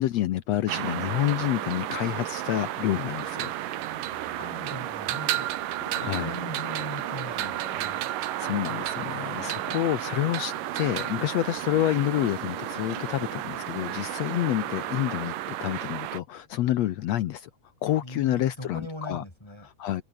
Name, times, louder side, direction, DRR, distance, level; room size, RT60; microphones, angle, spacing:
voice 1, 0.0-3.5 6.0-6.3 8.2-15.3 15.6-17.5 17.8-19.2 19.8-20.0, left 13 dB, 70° left, 1.7 m, -28 dB
sound 1, 0.7-16.2, right 14 dB, 85° right, 2.8 m, -32 dB
Growling, 3.0-4.7 5.1-8.1 8.6-15.4 15.7-15.8, left 9 dB, 85° left, 3.9 m, -47 dB
voice 2, 4.3-5.5 6.0-8.1 9.6-9.8 18.0-19.7, left 1 dB, 10° left, 3.7 m, -40 dB
omnidirectional pair, 3.8 m